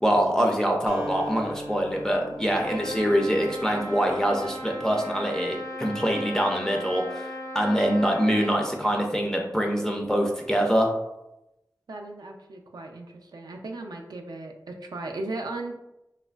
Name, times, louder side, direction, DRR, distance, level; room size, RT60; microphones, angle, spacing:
voice 1, 0.0-10.9, equal, 10° left, 0 dB, 0.3 m, -24 dB
Acoustic guitar, 0.9-4.7, equal, 30° right, 0.7 m, -40 dB
Trumpet, 2.5-8.6, equal, 70° left, 0.6 m, -37 dB
voice 2, 11.9-15.7, right 2 dB, 75° right, 2 dB, 0.3 m, -37 dB
3.0 x 2.4 x 2.2 m, 0.91 s
wide cardioid pair, 65°, 7 cm